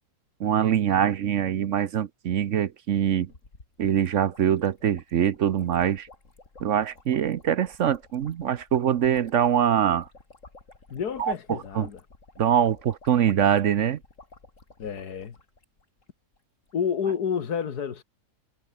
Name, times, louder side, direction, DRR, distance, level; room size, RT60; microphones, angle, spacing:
voice 1, 0.4-3.3 3.8-6.1 6.6-10.1 11.2-11.9 12.4-14.0, right 9 dB, 60° right, 1.0 m, -23 dB
sound 1, 3.3-16.0 16.3-16.4 16.6-16.9, left 3 dB, 55° left, 3.7 m, -53 dB
voice 2, 10.9-12.0 14.8-15.4 16.7-18.0, left 7 dB, 90° left, 2.1 m, -29 dB
omnidirectional pair, 1.6 m